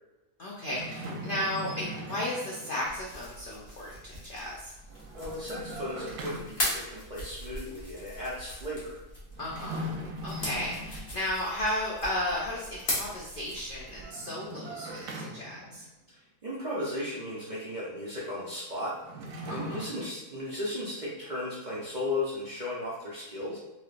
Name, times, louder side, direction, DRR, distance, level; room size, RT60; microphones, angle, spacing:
voice 1, 0.4-4.7 9.4-9.9 10.2-15.9 19.5-19.8, left 1 dB, 65° left, -5 dB, 0.5 m, -34 dB
sound 1, 0.7-3.0 4.8-6.8 9.3-11.4 13.7-15.9 18.8-19.9, right 1 dB, 90° right, 1.2 m, -40 dB
sound 2, 2.9-14.0, left 1 dB, 40° left, 1.2 m, -39 dB
voice 2, 5.1-9.0 16.1-19.0 19.2-23.6, left 1 dB, 45° right, -7 dB, 0.6 m, -36 dB
3.5 x 3.2 x 2.4 m, 1.1 s
omnidirectional pair, 1.6 m